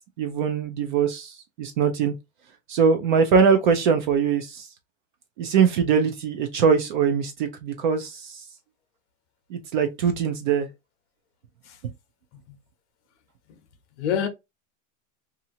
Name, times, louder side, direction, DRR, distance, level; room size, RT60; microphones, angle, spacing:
voice 1, 0.2-2.1 2.7-4.7 5.4-8.4 9.5-10.7, right 6 dB, 40° right, 0.4 m, -22 dB
voice 2, 14.0-14.3, left 8 dB, 60° left, 0.8 m, -28 dB
2.8 x 2.4 x 2.6 m
supercardioid pair, 170°, 41 cm